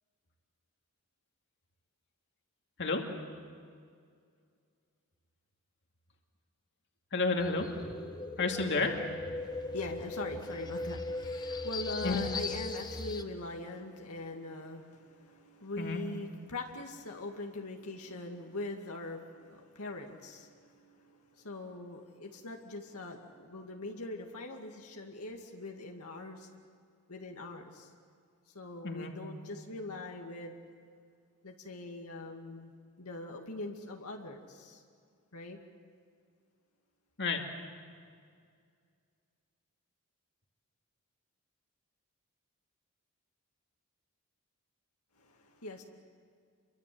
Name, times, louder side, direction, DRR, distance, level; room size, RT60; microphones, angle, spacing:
voice 1, 7.1-7.7 8.4-8.9 12.0-12.2 15.8-16.0 28.8-29.1 37.2-37.4, left 3 dB, 55° left, 3 dB, 2.5 m, -30 dB
sound 1, 7.4-13.2, left 2 dB, 20° left, 1.3 m, -38 dB
voice 2, 9.4-26.5 27.1-27.9 28.5-30.7 31.4-32.7 33.0-34.8 35.3-35.6 45.1-45.8, left 2 dB, 80° left, 2 dB, 2.3 m, -42 dB
29.0 x 24.0 x 7.9 m, 2.2 s
head